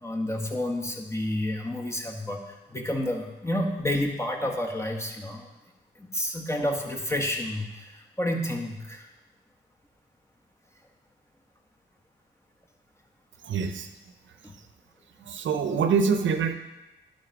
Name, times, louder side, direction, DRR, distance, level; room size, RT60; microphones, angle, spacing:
voice 1, 0.0-5.5 6.0-9.0 14.4-14.5, left 1 dB, 15° left, 1 dB, 1.6 m, -30 dB
voice 2, 13.4-13.9 15.2-16.5, right 5 dB, 75° right, 8 dB, 0.7 m, -25 dB
11.0 x 4.1 x 4.8 m, 1.0 s
supercardioid pair, 45°, 19 cm